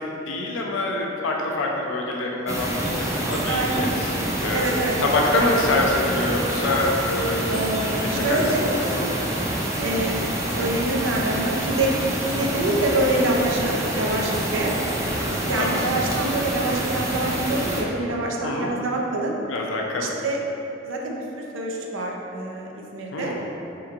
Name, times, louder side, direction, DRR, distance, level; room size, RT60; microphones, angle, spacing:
voice 1, 0.3-4.1 4.4-7.6 8.0-9.1 15.6-15.9 18.4-18.7 19.5-20.1 23.1-23.5, left 2 dB, 80° left, -1 dB, 0.4 m, -25 dB
sound 1, 2.5-17.8, right 1 dB, 15° right, 0.4 m, -27 dB
voice 2, 3.5-3.9 4.5-4.9 7.5-8.7 9.8-10.2 10.6-11.9 12.3-14.7 15.4-19.3 20.2-20.4 20.8-21.2 21.5-23.3, right 2 dB, 85° right, -1 dB, 0.5 m, -25 dB
4.4 x 2.9 x 2.4 m, 3.0 s
head